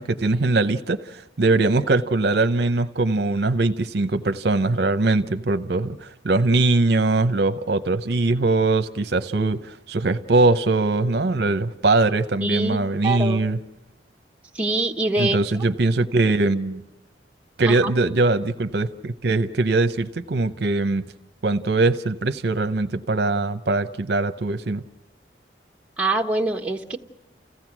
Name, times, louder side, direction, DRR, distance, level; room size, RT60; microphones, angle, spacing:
voice 1, 0.0-13.6 15.2-16.8 17.6-21.1 21.4-24.8, right 2 dB, 60° right, 10 dB, 0.7 m, -21 dB
voice 2, 12.4-12.8 13.0-13.4 14.5-15.4 17.6-17.9 26.0-27.0, right 2 dB, 5° right, 0 dB, 1.2 m, -24 dB
29.5 x 16.0 x 6.1 m, 0.95 s
head